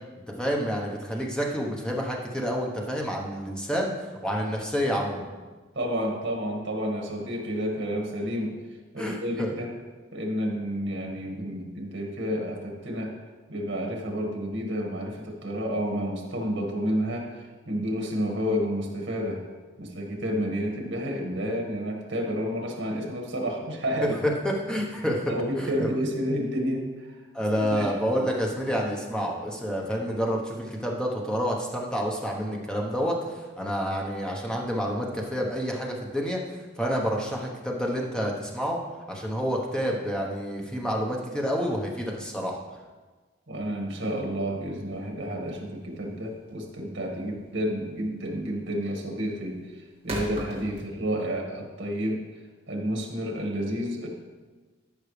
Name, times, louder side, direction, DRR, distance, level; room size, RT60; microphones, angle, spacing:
voice 1, 0.3-5.3 9.0-9.5 24.4-25.3 25.6-25.9 27.3-36.4 36.8-38.8 39.1-42.6 52.9-53.0, equal, 5° left, -1 dB, 1.1 m, -29 dB
voice 2, 5.7-8.6 8.9-9.7 10.1-13.2 13.5-19.4 19.8-24.2 25.3-27.3 27.7-27.9 43.5-52.2 52.7-54.1, equal, 70° right, 1 dB, 1.9 m, -30 dB
sound 1, 44.5-51.3, right 1 dB, 35° right, 2.0 m, -41 dB
14.0 x 5.6 x 3.3 m, 1.3 s
head